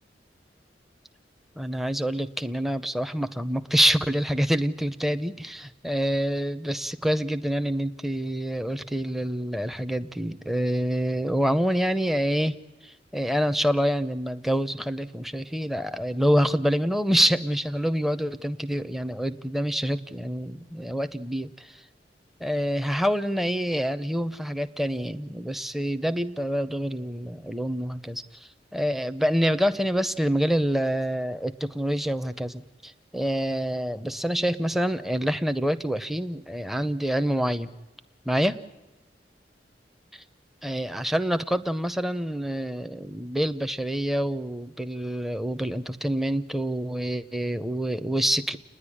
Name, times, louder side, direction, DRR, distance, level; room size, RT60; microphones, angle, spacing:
voice 1, 1.6-12.5 12.8-21.8 22.4-37.7 38.3-38.6 40.6-48.6, equal, ahead, 10 dB, 0.7 m, -26 dB
30.0 x 10.5 x 10.0 m, 1.1 s
head